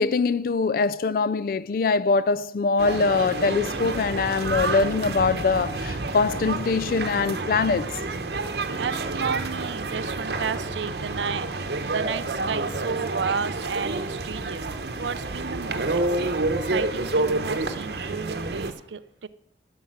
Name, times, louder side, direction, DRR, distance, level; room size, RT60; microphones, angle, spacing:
voice 1, 0.0-8.0, left 4 dB, 50° left, 0.3 m, -23 dB
sound 1, 2.8-18.7, right 2 dB, 70° right, 0.9 m, -29 dB
voice 2, 8.8-11.5 11.8-14.7 15.0-16.3 16.7-19.3, right 6 dB, 90° right, 0.5 m, -32 dB
11.5 x 5.0 x 7.8 m
head